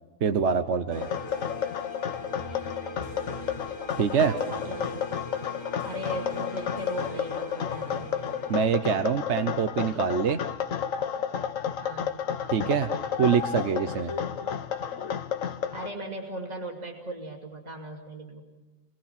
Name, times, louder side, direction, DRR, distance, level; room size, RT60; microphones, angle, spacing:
voice 1, 0.2-1.1 4.0-4.3 8.5-10.4 12.5-12.9 13.2-14.1, right 7 dB, 60° right, 8 dB, 1.2 m, -25 dB
sound 1, 0.9-15.9, left 8 dB, 75° left, 1.4 m, -32 dB
sound 2, 0.9-8.6, left 2 dB, 60° left, 3.0 m, -40 dB
voice 2, 4.2-5.0 5.8-8.4 11.8-12.2 15.7-18.4, right 1 dB, 30° right, 0 dB, 2.8 m, -37 dB
29.0 x 22.5 x 5.9 m, 1.1 s
omnidirectional pair, 1.4 m